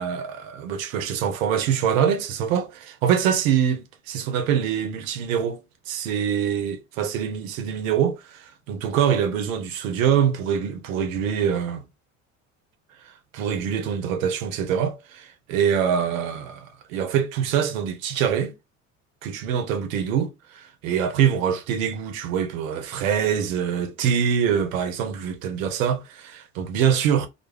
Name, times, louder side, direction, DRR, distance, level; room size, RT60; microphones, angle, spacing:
voice 1, 0.0-5.6 5.9-11.8 13.0-18.5 19.2-27.3, right 8 dB, 80° right, 0.7 m, -24 dB
2.4 x 2.0 x 3.2 m
hypercardioid pair, 70°, 39 cm